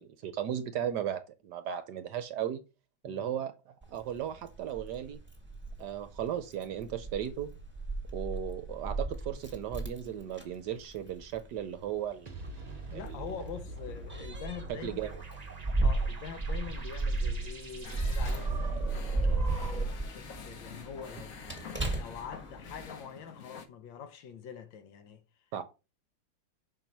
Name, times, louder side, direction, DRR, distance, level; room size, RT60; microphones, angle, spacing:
voice 1, 0.0-2.6 3.0-5.2 5.8-7.5 8.1-12.4 13.0-13.2 14.7-15.1 25.5-25.6, right 10 dB, 70° right, 1.1 m, -36 dB
Keys jangling, 3.8-22.9, right 2 dB, 5° right, 1.3 m, -35 dB
sound 1, 12.3-20.1, right 3 dB, 35° right, 0.6 m, -44 dB
voice 2, 12.9-15.0 15.8-21.4 21.9-25.5, left 7 dB, 75° left, 1.5 m, -45 dB
sound 2, 17.8-23.7, left 6 dB, 55° left, 1.1 m, -47 dB
5.9 x 4.5 x 5.2 m
omnidirectional pair, 2.2 m